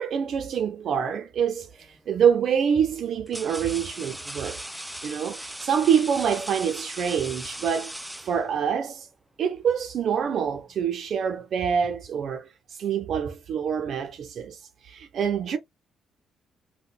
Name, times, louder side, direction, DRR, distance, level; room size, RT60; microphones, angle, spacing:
voice 1, 0.0-4.6 5.0-8.0 8.2-9.1 9.4-14.6 14.8-15.6, right 7 dB, 65° right, 0.6 m, -26 dB
sound 1, 1.7-2.0 2.8-8.8, right 1 dB, 5° right, 0.3 m, -39 dB
3.8 x 2.2 x 2.2 m
cardioid pair, 90°, 0 cm